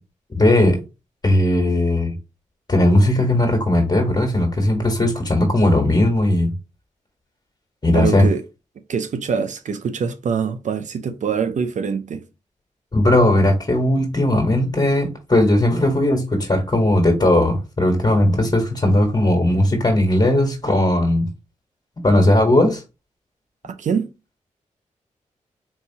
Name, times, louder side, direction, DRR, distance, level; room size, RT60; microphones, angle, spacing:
voice 1, 0.3-0.8 1.2-2.1 2.7-6.5 7.8-8.3 12.9-21.3 22.0-22.8, left 1 dB, 30° left, 1.4 m, -17 dB
voice 2, 7.9-8.4 8.9-12.2 23.6-24.1, right 6 dB, 65° right, 0.5 m, -24 dB
4.5 x 2.7 x 2.8 m
supercardioid pair, 45°, 14 cm